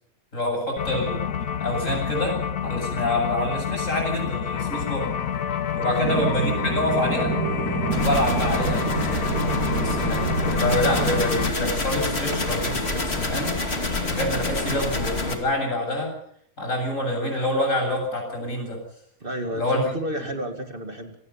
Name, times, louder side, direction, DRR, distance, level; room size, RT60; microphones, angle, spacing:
voice 1, 0.3-1.2 1.6-2.4 2.6-5.1 5.8-7.3 7.9-9.2 9.8-13.5 14.1-16.1 16.6-18.8 19.5-19.9, left 1 dB, 60° left, 2 dB, 8.6 m, -26 dB
sound 1, 0.8-11.5, left 8 dB, 85° left, 1.6 m, -28 dB
voice 2, 5.9-6.2 19.2-21.1, right 1 dB, 40° right, 5 dB, 2.3 m, -31 dB
sound 2, 6.0-11.2, right 8 dB, 80° right, 1.6 m, -28 dB
sound 3, 7.9-15.4, left 2 dB, 45° left, 2.9 m, -27 dB
27.0 x 19.0 x 5.8 m, 0.67 s
omnidirectional pair, 1.5 m